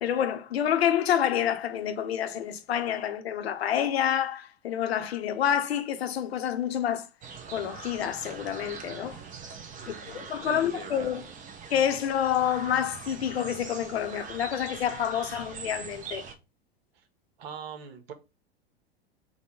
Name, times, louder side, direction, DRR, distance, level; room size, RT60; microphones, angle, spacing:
voice 1, 0.0-7.1 7.5-9.2 9.9-11.2 11.7-16.2, left 9 dB, 75° left, 0.7 m, -28 dB
sound 1, 7.2-16.3, right 5 dB, 25° right, 0.6 m, -42 dB
voice 2, 9.8-11.3 16.9-17.1 17.4-18.1, right 6 dB, 70° right, 0.9 m, -43 dB
3.8 x 2.2 x 4.4 m
hypercardioid pair, 90°, 31 cm